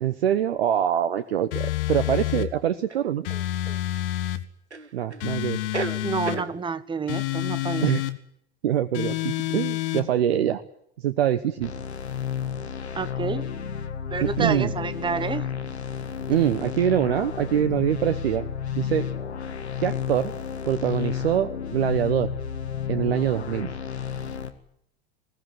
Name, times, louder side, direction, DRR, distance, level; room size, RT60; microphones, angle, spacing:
voice 1, 0.0-3.3 4.9-5.6 7.8-8.0 8.6-10.6 11.0-11.7 14.2-14.7 16.3-18.5 18.8-19.1 19.8-20.3 20.6-22.3 22.9-23.7, right 10 dB, 65° right, 11 dB, 1.1 m, -24 dB
sound 1, 1.1-1.3 2.9-3.8 4.7-5.3 5.5-6.5, right 3 dB, 85° right, 1.0 m, -33 dB
sound 2, 1.5-2.5 3.2-4.4 5.2-6.4 7.1-8.2 8.9-10.1, left 15 dB, 55° left, 1.6 m, -28 dB
voice 2, 6.0-7.9 12.9-13.5 14.1-15.5, right 5 dB, 15° right, 15 dB, 1.0 m, -29 dB
sound 3, 11.6-24.5, left 8 dB, 75° left, 1.9 m, -31 dB
21.0 x 17.5 x 9.6 m, 0.72 s
figure-of-eight pair, 80°, 33 cm